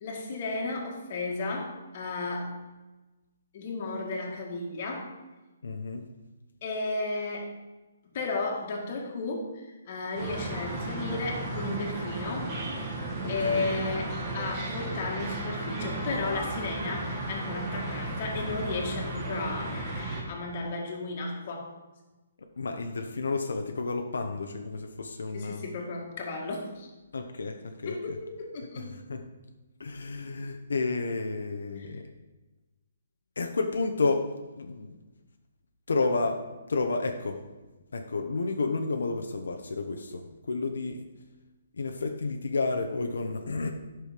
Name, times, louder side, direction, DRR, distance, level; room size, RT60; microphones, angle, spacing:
voice 1, 0.0-2.6 3.5-5.1 6.6-7.6 8.0-12.5 13.3-21.7 25.3-26.9 27.9-28.9, left 3 dB, 35° left, 0 dB, 1.9 m, -34 dB
voice 2, 5.6-6.1 13.2-13.7 22.4-25.6 27.1-28.2 28.8-29.2 29.8-32.1 33.4-34.3 34.5-35.0 35.9-36.4 36.7-37.4 37.9-41.1 41.7-43.7, left 3 dB, 85° left, 4 dB, 1.0 m, -31 dB
sound 1, 10.2-20.2, right 2 dB, 20° right, 1.9 m, -34 dB
9.9 x 6.3 x 5.1 m, 1.1 s
hypercardioid pair, 170°, 0 cm